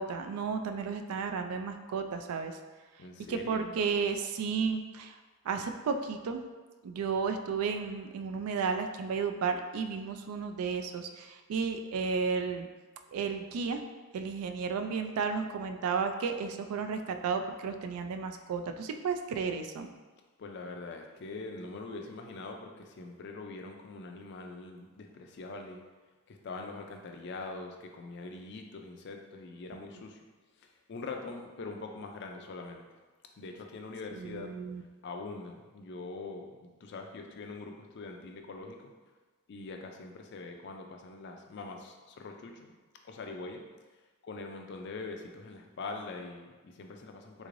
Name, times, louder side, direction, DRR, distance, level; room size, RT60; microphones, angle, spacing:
voice 1, 0.0-2.6 3.3-5.2 5.4-6.4 6.8-12.7 13.1-13.8 14.1-19.9 34.1-34.8, right 5 dB, 75° right, 6 dB, 0.3 m, -33 dB
voice 2, 3.0-3.8 20.4-25.8 26.3-30.2 30.6-32.9 33.4-34.5 35.0-38.9 39.5-42.7 43.0-43.6 44.2-47.5, left 3 dB, 50° left, 3 dB, 0.4 m, -43 dB
3.6 x 3.1 x 2.5 m, 1.3 s
head